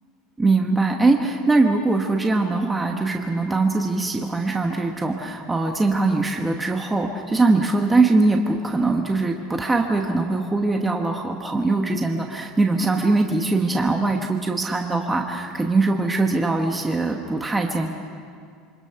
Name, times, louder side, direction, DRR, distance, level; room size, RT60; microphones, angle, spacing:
voice 1, 0.4-17.9, right 3 dB, 10° right, 2 dB, 1.1 m, -21 dB
27.0 x 24.5 x 5.7 m, 2.2 s
cardioid pair, 170°, 0 cm